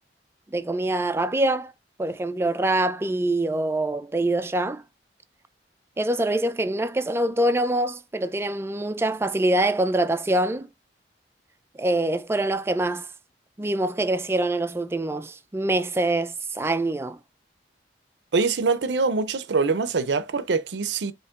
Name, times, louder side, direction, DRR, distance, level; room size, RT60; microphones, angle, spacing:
voice 1, 0.5-1.7 2.0-4.8 6.0-10.7 11.8-13.1 13.6-17.2, right 1 dB, 15° right, 0.3 m, -24 dB
voice 2, 18.3-21.1, right 4 dB, 80° right, 0.5 m, -24 dB
7.2 x 2.9 x 2.3 m
head